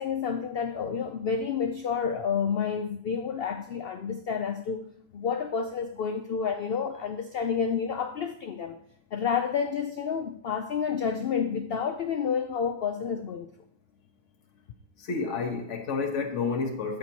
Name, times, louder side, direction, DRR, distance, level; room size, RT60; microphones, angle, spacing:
voice 1, 0.0-4.8 5.1-8.8 9.1-13.5, left 6 dB, 85° left, 7 dB, 0.5 m, -29 dB
voice 2, 15.0-17.0, left 4 dB, 55° left, 3 dB, 1.4 m, -30 dB
13.5 x 4.5 x 2.8 m, 0.67 s
omnidirectional pair, 1.6 m